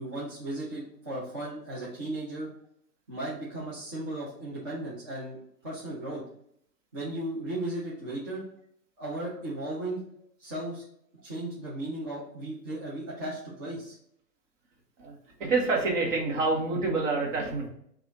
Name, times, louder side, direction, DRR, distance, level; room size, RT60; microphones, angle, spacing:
voice 1, 0.0-2.5 3.1-6.2 6.9-8.4 9.0-10.0 10.4-10.8 11.2-14.0, right 1 dB, 15° right, -8 dB, 0.5 m, -36 dB
voice 2, 15.4-17.7, right 3 dB, 50° right, 0 dB, 1.5 m, -27 dB
4.8 x 2.5 x 3.9 m, 0.70 s
hypercardioid pair, 145°, 49 cm